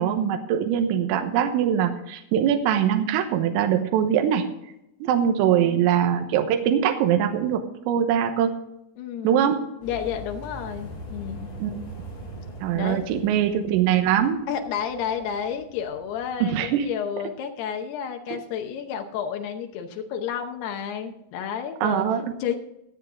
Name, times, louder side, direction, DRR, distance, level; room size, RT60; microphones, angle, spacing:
voice 1, 0.0-4.5 5.0-8.6 9.2-9.6 11.6-11.8 12.6-14.4 16.4-16.9 18.3-18.4 21.8-22.4, right 9 dB, 85° right, 6 dB, 3.7 m, -22 dB
voice 2, 5.4-5.9 9.0-9.5 9.8-11.5 12.7-13.3 14.5-22.1 22.4-22.6, left 8 dB, 80° left, 5 dB, 2.3 m, -31 dB
sound 1, 9.8-16.8, equal, 60° left, 7.0 m, -42 dB
21.0 x 7.7 x 3.6 m, 0.81 s
omnidirectional pair, 5.8 m